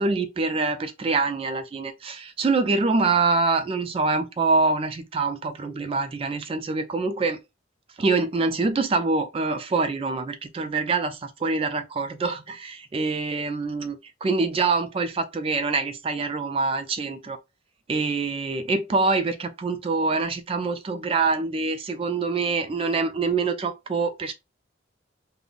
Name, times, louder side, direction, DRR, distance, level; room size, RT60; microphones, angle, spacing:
voice 1, 0.0-7.4 8.0-17.4 17.9-24.3, right 3 dB, 30° right, 0.3 m, -25 dB
3.6 x 2.0 x 2.4 m
head